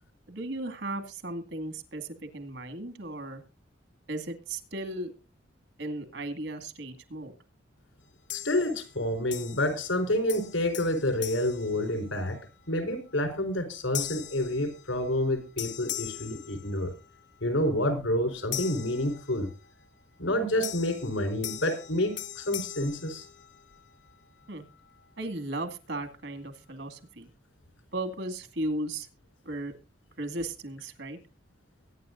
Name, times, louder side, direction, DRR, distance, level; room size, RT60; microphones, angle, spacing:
voice 1, 0.3-3.4 4.1-5.1 5.8-7.3 24.5-24.6 25.2-27.3 27.9-29.1 29.5-29.7 30.2-31.2, right 1 dB, 65° right, 8 dB, 2.2 m, -36 dB
voice 2, 8.3-12.4 12.7-16.9 17.4-19.5 20.2-23.3, left 1 dB, 85° left, 8 dB, 4.4 m, -28 dB
sound 1, 8.3-9.0 9.3-10.0 10.3-12.5 13.0-13.2 13.9-15.3 15.6-17.2 18.5-19.7 20.6-23.9, left 13 dB, 60° left, 1.3 m, -40 dB
22.5 x 10.0 x 2.6 m, 0.31 s
head